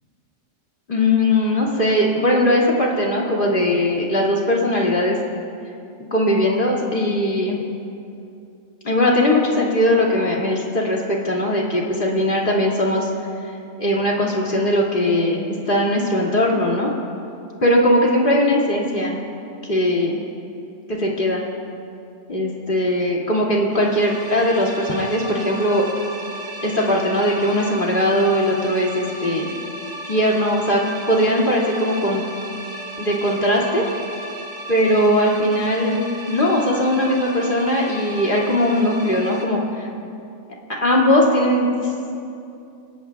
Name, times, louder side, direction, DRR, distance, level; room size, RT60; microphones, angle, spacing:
voice 1, 0.9-5.2 6.1-7.6 8.8-13.1 13.8-16.9 17.6-19.2 19.7-20.2 20.9-21.4 22.3-25.9 26.6-29.5 30.1-30.8 31.1-32.2 33.0-33.8 34.7-36.0 36.3-39.9 40.8-41.7, left 1 dB, 40° left, -3 dB, 2.6 m, -19 dB
sound 1, 23.7-39.4, right 1 dB, 30° right, 1.7 m, -35 dB
27.0 x 19.0 x 2.4 m, 2.6 s
omnidirectional pair, 1.4 m